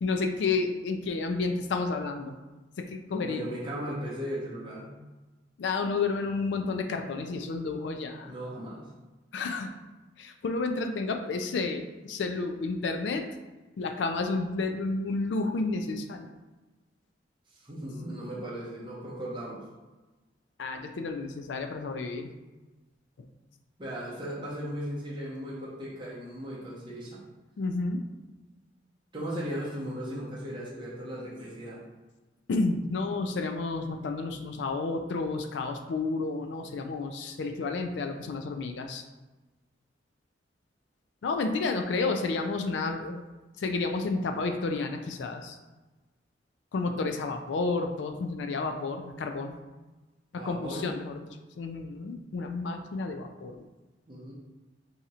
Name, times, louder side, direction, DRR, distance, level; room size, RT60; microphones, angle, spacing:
voice 1, 0.0-2.3 2.8-3.5 5.6-8.3 9.3-9.7 10.2-13.3 13.8-16.3 20.6-22.3 27.6-28.0 32.5-39.0 41.2-43.2 43.6-45.6 46.7-49.5 50.3-51.3 51.6-53.6, left 3 dB, 70° left, 5 dB, 0.4 m, -31 dB
voice 2, 3.2-4.9 8.3-8.9 17.6-19.6 23.8-27.2 29.1-31.8 50.3-50.9 54.1-54.3, equal, 25° right, -6 dB, 0.7 m, -37 dB
2.8 x 2.4 x 4.2 m, 1.1 s
head